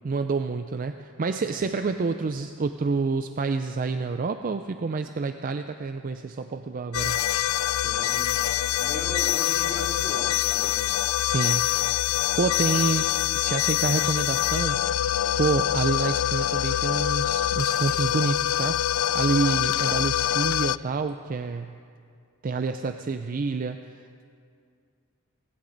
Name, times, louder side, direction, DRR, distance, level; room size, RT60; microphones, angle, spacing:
voice 1, 0.0-7.2 11.2-11.7 12.3-13.1 13.3-14.8 15.4-18.8 19.1-21.8 22.4-23.8, right 4 dB, 40° right, 8 dB, 0.4 m, -28 dB
sound 1, 6.9-20.8, left 12 dB, 75° left, 0.3 m, -25 dB
voice 2, 7.8-8.3 8.8-10.9, equal, 10° right, -4 dB, 2.7 m, -38 dB
18.0 x 16.5 x 4.0 m, 2.3 s
head